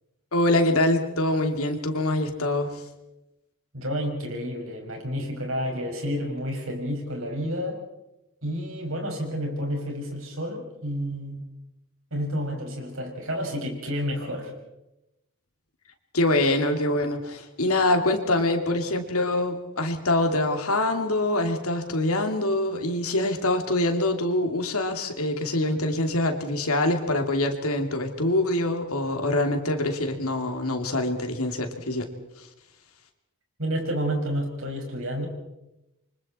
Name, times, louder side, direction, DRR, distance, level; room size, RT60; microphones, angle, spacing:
voice 1, 0.3-2.8 16.1-32.1, left 1 dB, 80° left, 5 dB, 2.8 m, -24 dB
voice 2, 3.7-7.8 8.4-11.4 12.1-14.5 33.6-35.3, equal, 65° right, 1 dB, 6.1 m, -30 dB
28.5 x 24.5 x 4.4 m, 0.93 s
head